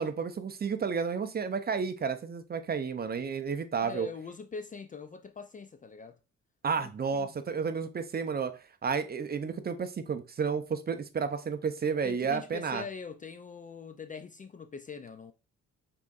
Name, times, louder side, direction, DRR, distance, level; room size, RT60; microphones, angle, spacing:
voice 1, 0.0-4.1 6.6-12.8, right 6 dB, 30° right, 0.6 m, -31 dB
voice 2, 3.8-6.2 6.8-7.4 12.0-15.3, left 5 dB, 25° left, 0.4 m, -43 dB
5.6 x 3.8 x 2.5 m
cardioid pair, 90°, 30 cm